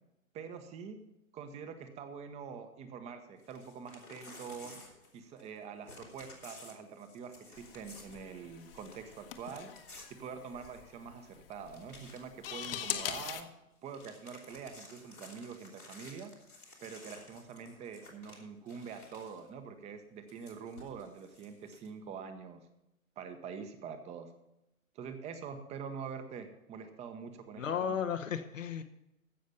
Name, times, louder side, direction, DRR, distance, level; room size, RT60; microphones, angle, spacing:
voice 1, 0.3-1.0 1.3-4.8 5.1-9.7 10.2-13.5 13.8-16.3 16.8-22.7 23.2-24.3 24.9-28.0, right 6 dB, 15° right, 8 dB, 1.0 m, -45 dB
Crumpling crinkling / Tearing, 3.4-5.6 5.8-11.0 11.3-11.4 11.7-12.7 13.0-13.4 13.7-19.5 20.3-21.9, left 2 dB, 90° left, 3.6 m, -54 dB
sound 1, 7.6-13.4, left 10 dB, 40° left, 1.2 m, -42 dB
voice 2, 27.6-28.8, left 7 dB, 65° left, 7 dB, 1.1 m, -34 dB
15.5 x 6.3 x 5.6 m, 0.89 s
figure-of-eight pair, 120°, 41 cm